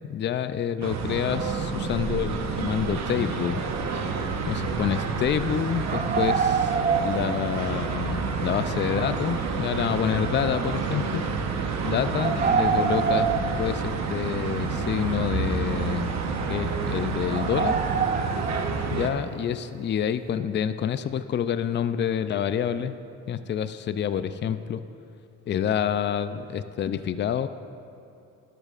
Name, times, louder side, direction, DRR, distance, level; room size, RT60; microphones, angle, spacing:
voice 1, 0.1-3.6 4.5-6.7 7.0-11.2 11.8-13.3 13.6-16.1 16.5-17.7 18.9-23.0 23.3-24.8 25.5-27.5, left 8 dB, 40° left, 12 dB, 0.4 m, -27 dB
sound 1, 0.8-19.1, right 4 dB, 60° right, 1.0 m, -29 dB
sound 2, 5.8-7.9 8.1-8.2 12.1-14.1 14.5-14.6 15.6-15.7 16.1-16.2 16.7-16.9 17.3-19.2, right 6 dB, 30° right, 0.5 m, -26 dB
12.5 x 12.0 x 2.5 m, 2.7 s
cardioid pair, 90°, 30 cm